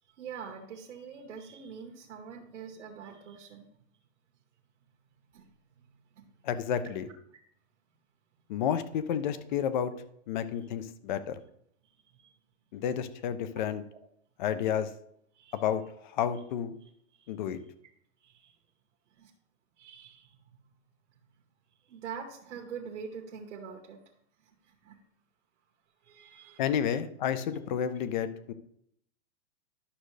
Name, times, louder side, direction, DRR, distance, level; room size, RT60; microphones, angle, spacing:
voice 1, 0.1-3.7 5.3-5.5 5.8-6.2 6.8-6.9 11.8-12.3 15.3-15.6 16.8-17.4 18.2-18.6 19.1-19.3 19.8-20.4 21.8-24.0 24.4-25.0 26.0-27.0, right 6 dB, 85° right, 0 dB, 1.4 m, -45 dB
voice 2, 6.4-7.1 8.5-9.9 10.3-11.4 12.7-13.8 14.4-14.9 15.5-15.8 16.1-16.8 17.3-17.6 26.6-28.5, left 9 dB, 40° left, 12 dB, 0.7 m, -30 dB
11.5 x 6.4 x 3.3 m, 0.70 s
supercardioid pair, 170°, 35 cm